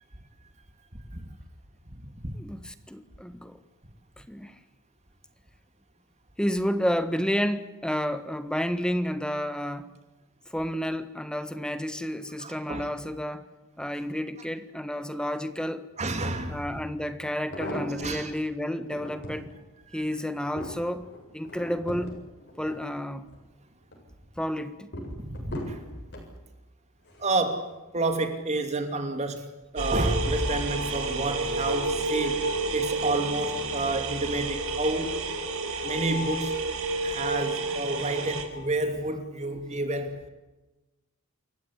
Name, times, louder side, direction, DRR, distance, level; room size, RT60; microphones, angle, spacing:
voice 1, 2.3-3.6 4.2-4.6 6.4-9.9 10.5-13.5 13.8-15.9 16.5-19.5 19.9-22.2 22.6-23.3 24.4-24.9, equal, 5° left, 1.5 m, -31 dB
voice 2, 12.4-12.9 16.0-16.7 18.0-18.3 19.9-20.0 25.2-25.8 27.2-29.5 29.7-35.2 35.8-36.5 37.0-40.2, right 2 dB, 30° right, 2.7 m, -30 dB
sound 1, 17.3-18.3 18.8-19.4 20.0-23.4 23.8-24.3 24.9-26.3 27.0-27.4 27.7-27.8, equal, 50° left, 7.8 m, -39 dB
sound 2, 29.8-38.4, right 2 dB, 70° right, 5.1 m, -30 dB
29.0 x 15.5 x 10.0 m
head